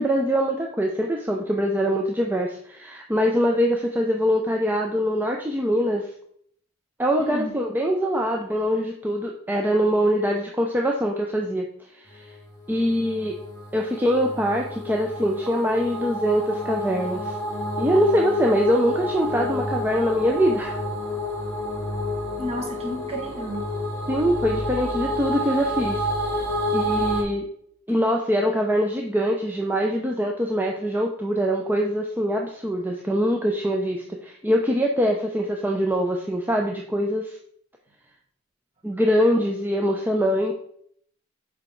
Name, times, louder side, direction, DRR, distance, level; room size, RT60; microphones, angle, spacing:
voice 1, 0.0-6.1 7.0-11.7 12.0-12.3 12.7-13.4 13.7-17.4 17.8-20.8 24.1-26.0 26.7-27.5 27.9-37.4 38.8-40.5, equal, 10° right, 0 dB, 0.5 m, -23 dB
voice 2, 7.2-7.5 22.4-23.7, equal, 30° right, 1 dB, 1.4 m, -31 dB
sound 1, 12.3-27.2, left 1 dB, 15° left, 1.7 m, -29 dB
6.9 x 4.7 x 3.7 m, 0.66 s
head